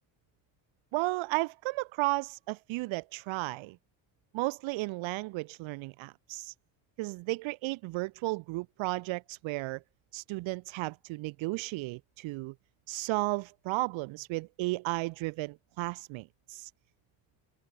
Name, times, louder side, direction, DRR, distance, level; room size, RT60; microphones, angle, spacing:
voice 1, 0.9-3.8 4.3-6.5 7.0-9.8 10.1-12.5 12.9-16.7, right 22 dB, 70° right, 1.7 m, -34 dB
cardioid pair, 175°, 47 cm